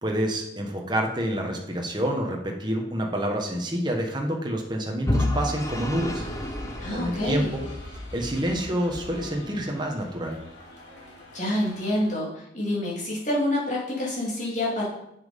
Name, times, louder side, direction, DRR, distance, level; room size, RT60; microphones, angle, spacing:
voice 1, 0.0-6.2 6.9-7.6 7.9-10.4, equal, 25° right, 1 dB, 1.3 m, -28 dB
Vehicle / Engine, 5.1-8.1, left 1 dB, 15° left, 0.9 m, -29 dB
sound 1, 5.7-12.1, left 1 dB, 75° left, 2.8 m, -42 dB
voice 2, 6.8-7.5 11.3-14.9, left 1 dB, 40° left, -5 dB, 3.1 m, -27 dB
7.5 x 7.4 x 5.3 m, 0.81 s
head